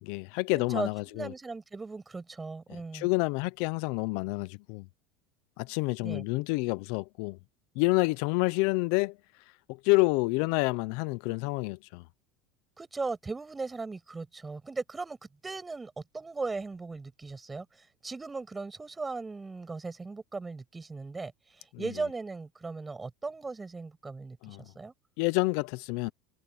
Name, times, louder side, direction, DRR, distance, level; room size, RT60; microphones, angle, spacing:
voice 1, 0.0-1.3 2.9-4.9 5.6-7.4 7.8-9.2 9.7-12.0 24.4-24.6 25.2-26.1, left 25 dB, 70° left, 0.7 m, -28 dB
voice 2, 0.7-3.1 6.0-6.2 12.8-15.2 15.4-24.9, right 3 dB, 15° right, 6.9 m, -38 dB
supercardioid pair, 115°, 0 cm